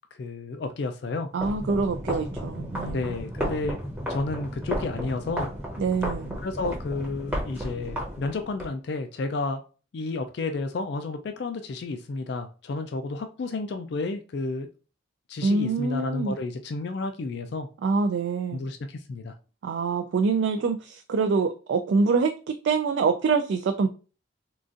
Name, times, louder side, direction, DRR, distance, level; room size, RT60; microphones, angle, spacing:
voice 1, 0.2-1.3 2.8-3.8 4.1-5.5 6.4-9.6 9.9-14.7 15.3-17.7 18.5-19.3, left 3 dB, 55° left, 0.3 m, -31 dB
sound 1, 1.3-8.7, equal, 10° right, 0.7 m, -33 dB
voice 2, 1.3-3.2 5.8-6.4 15.4-16.4 17.8-18.7 19.6-23.9, right 4 dB, 65° right, 0.3 m, -25 dB
3.8 x 2.4 x 2.4 m
head